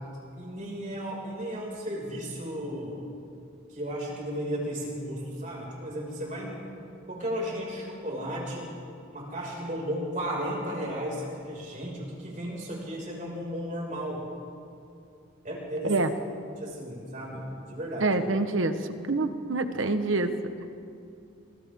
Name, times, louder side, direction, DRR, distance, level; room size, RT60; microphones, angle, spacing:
voice 1, 0.4-3.0 3.7-6.7 7.1-8.7 9.1-14.2 15.4-15.9 16.6-18.1, equal, 35° right, -3 dB, 6.1 m, -34 dB
voice 2, 18.0-20.3, right 2 dB, 70° right, 8 dB, 1.3 m, -26 dB
28.5 x 25.5 x 3.8 m, 2.7 s
head